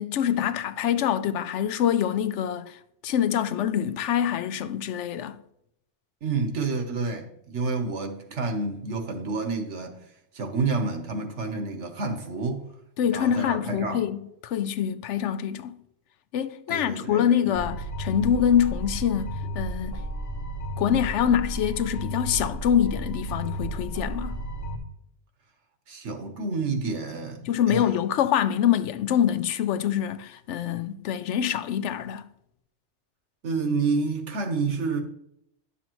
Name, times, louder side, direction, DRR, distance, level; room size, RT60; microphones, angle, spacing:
voice 1, 0.0-5.4 13.0-15.8 16.3-20.0 20.8-24.4 27.4-32.2, left 9 dB, 75° left, 0.9 m, -25 dB
voice 2, 6.2-10.0 10.3-12.7 13.1-14.0 16.7-17.6 25.9-27.9 33.4-35.0, right 4 dB, 75° right, 1.4 m, -29 dB
sound 1, 17.5-24.8, right 1 dB, 55° left, 1.2 m, -33 dB
11.0 x 7.0 x 3.0 m
omnidirectional pair, 1.2 m